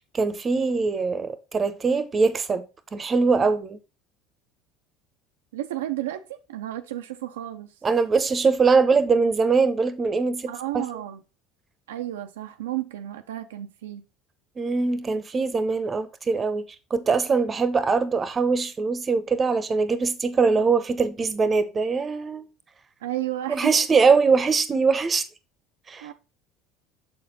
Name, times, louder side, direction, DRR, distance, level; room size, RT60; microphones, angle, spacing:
voice 1, 0.1-2.6 2.9-3.8 7.8-10.9 14.6-16.6 16.9-22.5 23.5-25.3 25.9-26.1, right 4 dB, 30° right, 0.8 m, -22 dB
voice 2, 5.5-7.7 10.5-11.2 11.9-14.0 23.0-23.7 26.0-26.1, right 14 dB, 85° right, 0.5 m, -32 dB
6.5 x 4.4 x 3.9 m
hypercardioid pair, 80°, 0 cm